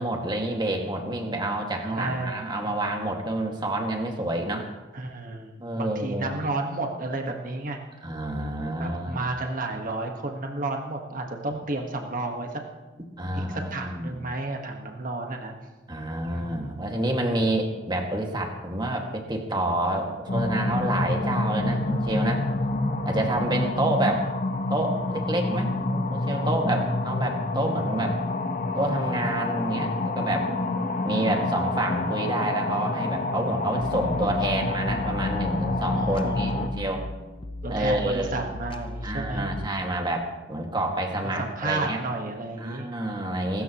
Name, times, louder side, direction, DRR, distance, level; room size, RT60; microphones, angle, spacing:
voice 1, 0.0-4.7 5.6-6.3 8.0-9.3 13.2-14.2 15.9-22.4 23.0-24.3 24.7-28.2 28.7-30.5 31.0-37.0 37.7-38.4 39.0-42.0 42.6-43.6, right 1 dB, 25° right, 2 dB, 2.0 m, -28 dB
voice 2, 2.0-2.3 4.9-7.8 8.8-12.6 13.3-15.5 16.3-16.7 23.6-23.7 35.9-36.7 37.6-39.5 41.2-42.9 43.5-43.6, right 2 dB, 45° right, 2 dB, 1.5 m, -32 dB
sound 1, 20.3-36.7, left 2 dB, 45° left, 1.1 m, -28 dB
sound 2, 33.8-39.7, left 1 dB, 30° left, 0.6 m, -37 dB
24.5 x 13.5 x 3.1 m, 1.2 s
head